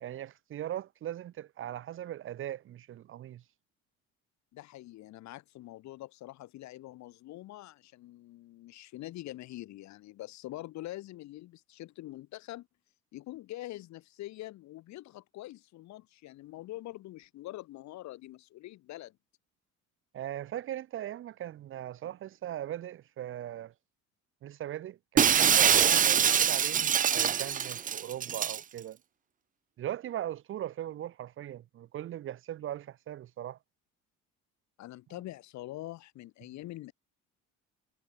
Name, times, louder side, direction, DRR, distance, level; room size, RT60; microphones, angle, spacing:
voice 1, 0.0-3.4 20.1-23.7 24.4-29.0 29.8-33.6, right 12 dB, 45° right, 1.2 m, -39 dB
voice 2, 4.5-12.7 13.1-19.2 34.8-36.9, left 16 dB, 65° left, 6.6 m, -44 dB
Shatter, 25.2-28.6, right 8 dB, 25° right, 0.9 m, -24 dB
cardioid pair, 175°, 30 cm